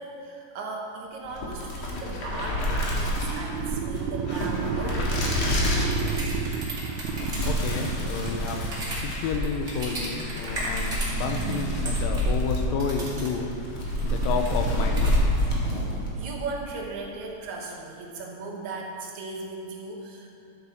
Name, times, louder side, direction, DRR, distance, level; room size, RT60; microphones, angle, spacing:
voice 1, 0.0-5.3 16.2-20.4, right 3 dB, 65° right, -1 dB, 2.1 m, -37 dB
sound 1, 1.2-16.2, left 1 dB, 50° left, 1.8 m, -28 dB
sound 2, 3.1-9.2 11.1-16.3, right 9 dB, 85° right, 2.0 m, -34 dB
sound 3, 5.8-11.6 11.9-12.3 12.8-13.3 13.9-15.5, right 1 dB, 30° right, 1.6 m, -36 dB
voice 2, 7.2-8.6 9.0-13.5 14.0-15.2, left 5 dB, 80° left, 4 dB, 2.3 m, -31 dB
12.0 x 8.6 x 4.2 m, 2.7 s
omnidirectional pair, 4.3 m